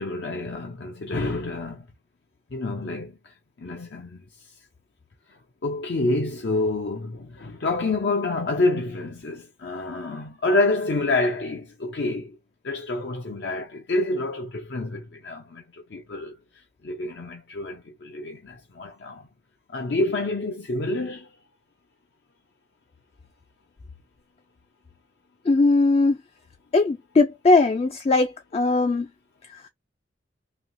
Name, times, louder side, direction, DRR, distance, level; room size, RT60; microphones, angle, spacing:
voice 1, 0.0-1.9 2.5-4.5 5.3-12.4 12.6-19.3 19.7-21.3, left 2 dB, 70° left, 0.6 m, -28 dB
voice 2, 25.5-26.2 26.7-29.1, left 3 dB, 35° left, 0.3 m, -19 dB
3.1 x 2.7 x 2.5 m
head